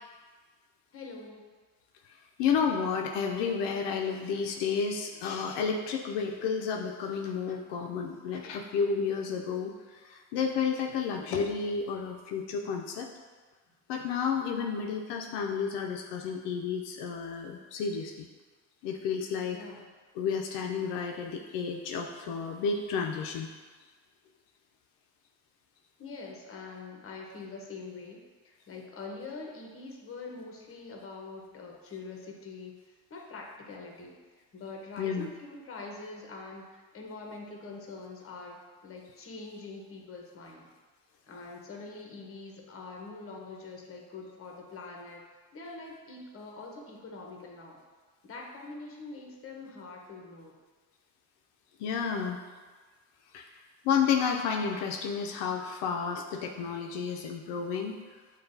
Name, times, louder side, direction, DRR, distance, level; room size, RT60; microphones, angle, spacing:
voice 1, 0.9-1.5 19.5-19.8 26.0-28.2 28.4-32.8 33.1-34.2 34.5-40.7 41.3-45.2 45.5-47.8 48.2-50.5, left 3 dB, 35° left, 0 dB, 0.9 m, -44 dB
voice 2, 2.4-13.1 13.9-18.3 18.8-19.6 20.2-23.5 35.0-35.3 51.8-52.4 53.3-53.6 53.8-57.9, left 6 dB, 85° left, 2 dB, 0.5 m, -31 dB
6.9 x 2.3 x 2.6 m, 1.4 s
cardioid pair, 95°, 40 cm